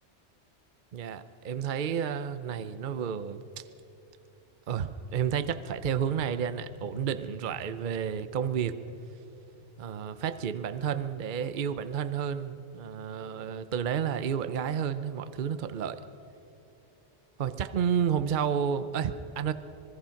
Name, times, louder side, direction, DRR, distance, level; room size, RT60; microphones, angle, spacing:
voice 1, 0.9-3.6 4.7-8.8 9.8-16.0 17.4-19.5, right 8 dB, 50° right, 12 dB, 0.8 m, -31 dB
sound 1, 5.0-11.0, left 4 dB, 60° left, 3.1 m, -51 dB
26.0 x 21.0 x 5.8 m, 3.0 s
omnidirectional pair, 1.2 m